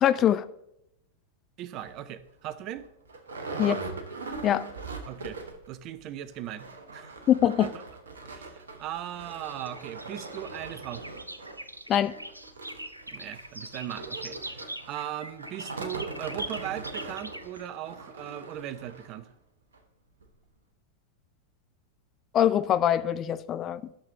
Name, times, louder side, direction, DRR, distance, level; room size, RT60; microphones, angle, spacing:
voice 1, 0.0-0.5 3.6-3.7 4.4-4.6 7.3-7.7 11.9-12.1 22.3-23.8, left 10 dB, 30° left, 14 dB, 0.4 m, -23 dB
voice 2, 1.6-2.9 3.5-3.9 5.1-5.4 5.7-7.8 8.2-11.0 13.1-19.3, right 11 dB, 40° right, 15 dB, 0.6 m, -38 dB
sound 1, 1.8-2.0 2.5-2.6 2.8-5.7 6.0-6.1 6.4-19.2 19.7-19.8 20.2-20.3, right 3 dB, 70° right, 1.1 m, -41 dB
sound 2, 8.1-17.7, right 1 dB, 85° right, 0.5 m, -42 dB
11.5 x 6.7 x 2.7 m, 0.81 s
figure-of-eight pair, 90°, 0 cm